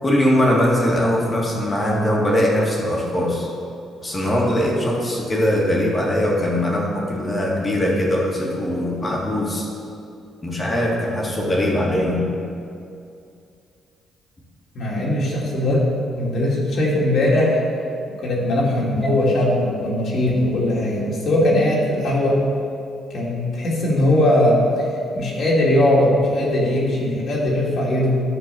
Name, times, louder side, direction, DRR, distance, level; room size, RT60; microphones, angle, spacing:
voice 1, 0.0-3.5 4.0-9.7 10.4-12.3 19.0-19.1, left 1 dB, 25° left, -3 dB, 2.1 m, -21 dB
voice 2, 14.7-15.9 16.2-17.6 18.2-22.4 23.1-24.9 25.1-28.2, left 1 dB, 60° left, -5 dB, 2.4 m, -19 dB
10.5 x 4.6 x 7.0 m, 2.5 s
cardioid pair, 90°, 0 cm